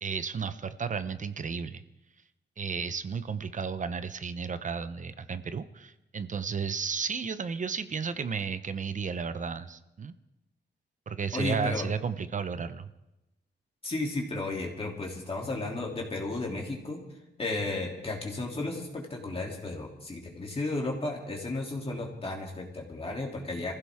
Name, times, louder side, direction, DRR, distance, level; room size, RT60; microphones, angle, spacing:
voice 1, 0.0-1.8 2.6-10.1 11.1-12.9, right 5 dB, 45° right, 12 dB, 0.7 m, -33 dB
voice 2, 11.3-11.9 13.8-17.0 17.4-23.7, left 2 dB, 30° left, -1 dB, 2.8 m, -33 dB
26.5 x 15.5 x 3.6 m, 0.94 s
wide cardioid pair, 115°, 18 cm